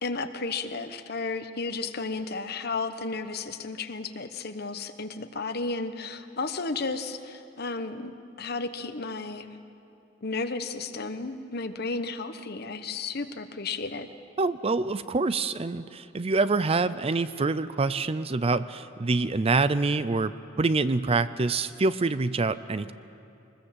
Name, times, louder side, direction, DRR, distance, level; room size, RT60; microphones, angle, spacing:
voice 1, 0.0-9.6 10.2-14.1, left 3 dB, 55° left, 9 dB, 1.1 m, -33 dB
voice 2, 14.4-22.9, right 3 dB, 30° right, 14 dB, 0.5 m, -26 dB
24.0 x 20.5 x 7.4 m, 2.8 s
head